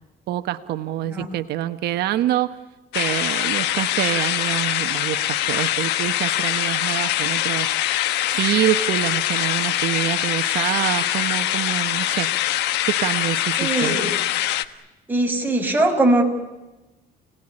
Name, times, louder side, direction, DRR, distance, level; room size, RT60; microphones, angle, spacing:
voice 1, 0.3-2.6 2.9-7.8 8.3-12.3 12.9-14.0, right 13 dB, 75° right, 9 dB, 1.2 m, -26 dB
sound 1, 2.9-14.7, left 13 dB, 85° left, 1.3 m, -23 dB
voice 2, 13.6-14.1 15.1-16.2, right 2 dB, 10° right, 2 dB, 6.0 m, -20 dB
30.0 x 19.5 x 9.9 m, 1.1 s
cardioid pair, 110°, 17 cm